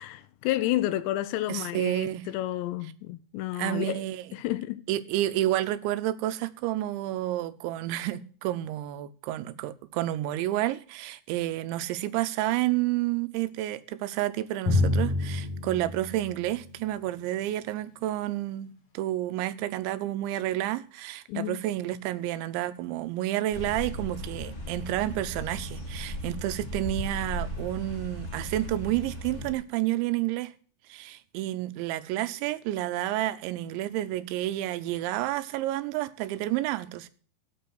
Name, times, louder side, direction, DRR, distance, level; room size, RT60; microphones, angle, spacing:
voice 1, 0.0-4.0 4.3-4.8 21.3-21.6, left 15 dB, 80° left, 2.7 m, -30 dB
voice 2, 1.5-2.3 3.5-4.2 4.9-30.5 30.9-37.1, right 14 dB, 85° right, 3.0 m, -30 dB
Drum, 14.7-17.0, left 2 dB, 40° left, 2.1 m, -28 dB
sound 1, 23.5-29.5, equal, 60° left, 0.7 m, -37 dB
15.5 x 5.2 x 7.7 m
omnidirectional pair, 5.2 m